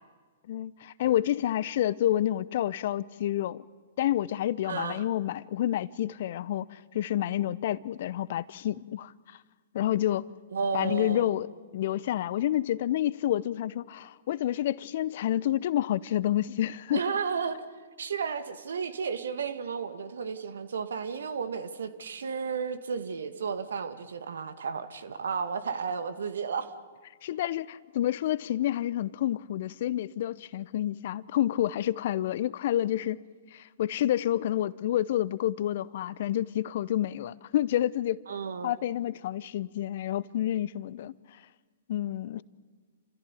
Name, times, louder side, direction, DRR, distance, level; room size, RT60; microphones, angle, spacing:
voice 1, 0.5-3.6 4.0-9.4 9.7-10.3 10.7-11.5 11.7-17.0 27.2-33.2 33.5-38.2 38.6-41.1 41.9-42.4, left 12 dB, 55° left, 0.7 m, -29 dB
voice 2, 4.6-5.0 10.5-11.3 16.9-26.7 38.3-38.7, right 6 dB, 70° right, 1.9 m, -33 dB
29.0 x 15.0 x 9.9 m
figure-of-eight pair, 115°, 0 cm